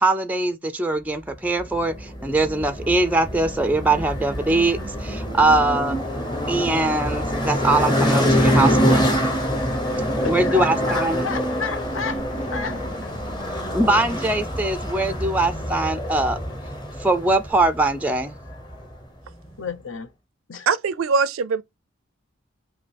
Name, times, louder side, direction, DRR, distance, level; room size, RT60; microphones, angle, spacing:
voice 1, 0.0-6.0 6.5-9.0 10.3-11.3 13.7-16.4 17.0-18.4, right 2 dB, 10° right, 0.4 m, -22 dB
sound 1, 1.6-19.0, equal, 20° left, 0.9 m, -25 dB
voice 2, 10.2-13.2 19.6-20.1 20.5-20.7, left 6 dB, 70° left, 0.8 m, -32 dB
voice 3, 20.7-21.6, right 5 dB, 85° right, 0.4 m, -21 dB
5.2 x 2.7 x 3.4 m
head